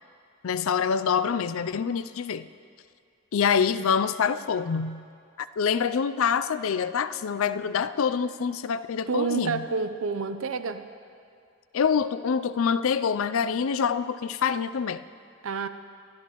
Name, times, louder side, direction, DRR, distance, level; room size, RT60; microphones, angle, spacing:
voice 1, 0.4-2.5 3.3-5.1 5.4-9.6 11.7-15.0, left 6 dB, 75° left, 13 dB, 0.4 m, -26 dB
voice 2, 9.1-10.9 15.4-15.7, right 4 dB, 75° right, 10 dB, 0.6 m, -28 dB
22.0 x 13.0 x 3.0 m, 2.3 s
head